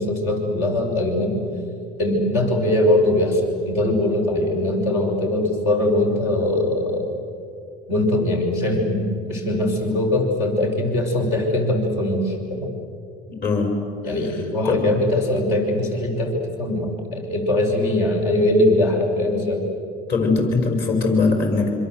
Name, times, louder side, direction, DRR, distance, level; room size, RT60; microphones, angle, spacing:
voice 1, 0.0-1.4 2.0-7.1 7.9-12.7 14.0-19.7, left 1 dB, 85° left, 0 dB, 5.9 m, -21 dB
voice 2, 13.3-14.9 20.1-21.7, left 3 dB, 55° left, 3 dB, 6.1 m, -22 dB
27.0 x 26.5 x 8.0 m, 2.6 s
supercardioid pair, 90°, 20 cm